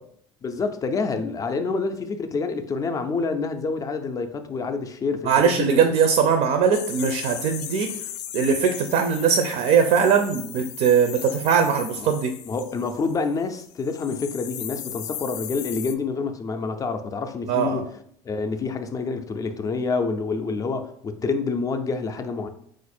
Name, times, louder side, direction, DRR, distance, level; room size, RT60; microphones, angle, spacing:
voice 1, 0.4-5.9 12.0-12.1 12.5-17.9 18.2-22.5, left 4 dB, 25° left, 0.4 m, -27 dB
voice 2, 5.3-7.9 8.3-12.3 17.5-17.8, right 6 dB, 55° right, 0.5 m, -20 dB
sound 1, 6.7-13.4 13.7-15.9, left 11 dB, 85° left, 0.4 m, -37 dB
4.1 x 2.5 x 4.2 m
supercardioid pair, 120°, 14 cm